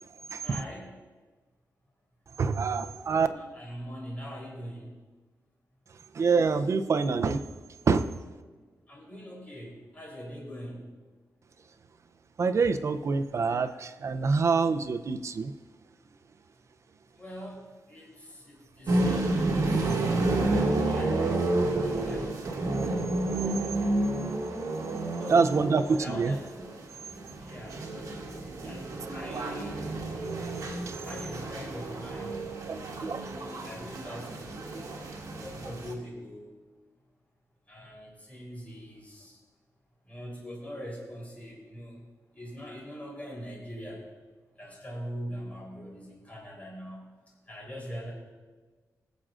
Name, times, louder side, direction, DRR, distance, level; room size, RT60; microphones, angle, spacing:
voice 1, 0.4-1.0 3.3-4.9 8.9-10.8 17.2-17.6 17.9-19.9 20.3-21.4 21.8-22.3 25.2-25.5 25.9-26.5 27.4-27.8 28.6-30.1 31.0-32.4 32.9-34.8 35.4-36.5 37.7-39.4 40.1-42.0 42.4-44.0 44.6-47.0 47.5-48.1, equal, 25° left, -4 dB, 3.6 m, -42 dB
voice 2, 2.4-3.3 6.2-7.4 7.9-8.1 12.4-15.5 23.4-23.7 25.3-26.3 32.7-33.3, right 4 dB, 50° right, 9 dB, 0.5 m, -26 dB
sound 1, 18.9-35.9, right 2 dB, 70° right, 1.5 m, -30 dB
21.0 x 7.5 x 2.5 m, 1.4 s
wide cardioid pair, 135°, 6 cm